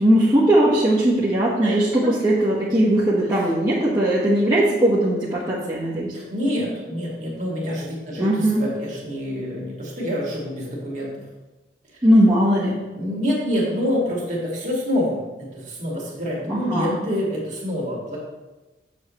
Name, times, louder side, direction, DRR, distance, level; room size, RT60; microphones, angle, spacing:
voice 1, 0.0-6.1 8.2-8.6 12.0-12.8 16.5-17.0, right 1 dB, 20° right, -9 dB, 1.3 m, -19 dB
voice 2, 6.1-11.2 12.9-18.2, left 1 dB, 40° right, -3 dB, 2.2 m, -26 dB
8.2 x 7.1 x 3.1 m, 1.1 s
head